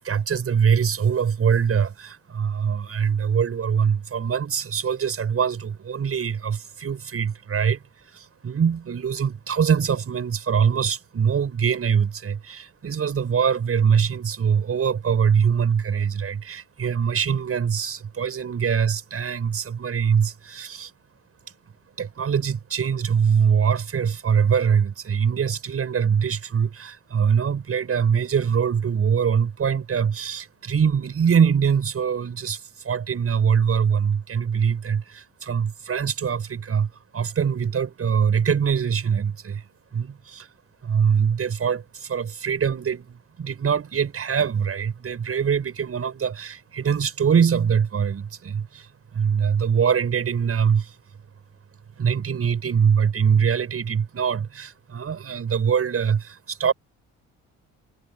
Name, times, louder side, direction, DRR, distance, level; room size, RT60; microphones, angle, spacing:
voice 1, 0.0-20.9 22.0-39.7 39.9-40.5 40.8-50.9 52.0-56.7, right 7 dB, 50° right, 8.0 m, -23 dB
cardioid pair, 90°, 30 cm